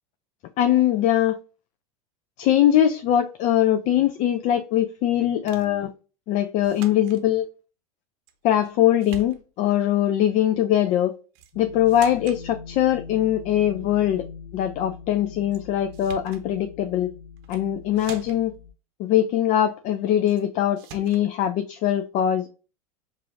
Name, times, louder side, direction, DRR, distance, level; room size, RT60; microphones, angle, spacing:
voice 1, 0.6-1.4 2.4-5.9 6.3-7.5 8.4-11.1 11.6-14.2 14.5-17.1 17.5-18.5 19.0-22.5, left 11 dB, 40° left, 0.4 m, -22 dB
sound 1, 5.5-5.8 6.6-7.2 8.3-8.7 9.0-9.7 11.3-11.6 11.9-12.4 15.5-15.6 15.9-16.5 17.4-17.7 18.0-18.6 20.3-20.4 20.8-21.3, right 7 dB, 50° right, 0.7 m, -44 dB
sound 2, 11.5-18.7, left 5 dB, 75° left, 1.1 m, -42 dB
5.5 x 2.4 x 2.5 m
hypercardioid pair, 90°, 19 cm